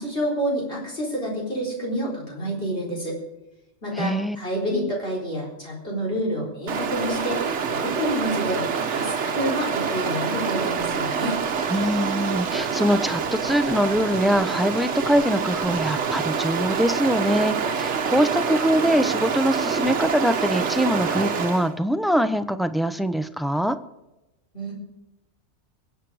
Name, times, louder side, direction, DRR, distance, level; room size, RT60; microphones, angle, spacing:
voice 1, 0.0-3.2 3.8-11.4 24.5-24.7, equal, 50° left, -2 dB, 4.6 m, -28 dB
voice 2, 3.9-4.4 4.7-4.9 11.7-23.8, equal, ahead, 10 dB, 0.5 m, -23 dB
Stream, 6.7-21.7, right 6 dB, 75° right, 1.3 m, -26 dB
23.0 x 8.3 x 4.8 m, 0.96 s
omnidirectional pair, 1.2 m